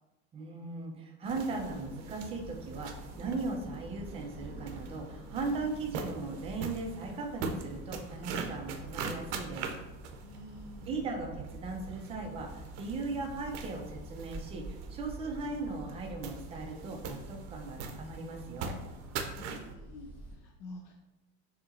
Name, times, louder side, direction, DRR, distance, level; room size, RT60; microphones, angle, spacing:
voice 1, 0.3-9.7 10.9-18.8, right 3 dB, 15° right, 1 dB, 0.4 m, -38 dB
sound 1, 1.2-19.7, right 5 dB, 80° right, 0.7 m, -43 dB
sound 2, 1.5-20.4, right 2 dB, 5° left, 1.5 m, -48 dB
voice 2, 10.2-11.0 19.3-20.9, left 2 dB, 45° left, 1 dB, 0.4 m, -49 dB
6.6 x 2.9 x 2.5 m, 1.0 s
cardioid pair, 165°, 35 cm